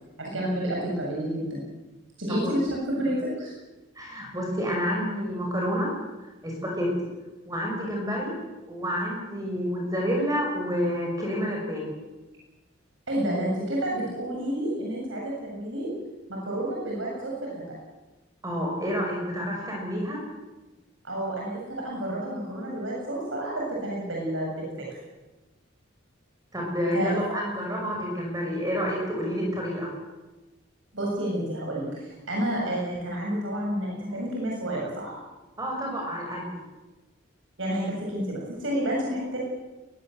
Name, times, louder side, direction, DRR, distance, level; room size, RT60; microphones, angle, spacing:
voice 1, 0.2-1.6 2.2-3.5 13.1-15.9 16.3-17.7 21.0-24.9 26.9-27.2 30.9-35.2 37.6-39.4, right 1 dB, 75° right, -3 dB, 7.5 m, -30 dB
voice 2, 4.0-5.9 6.4-6.9 7.5-8.3 8.7-11.9 18.4-20.2 26.5-29.9 35.6-36.5, equal, 20° right, -1 dB, 5.9 m, -29 dB
22.0 x 22.0 x 7.9 m, 1.1 s
head